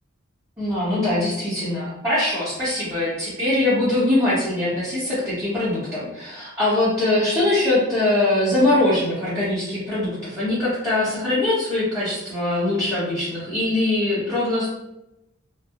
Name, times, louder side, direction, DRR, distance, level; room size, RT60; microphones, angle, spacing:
voice 1, 0.6-14.8, left 2 dB, 15° right, -13 dB, 0.8 m, -22 dB
2.2 x 2.0 x 2.7 m, 0.87 s
head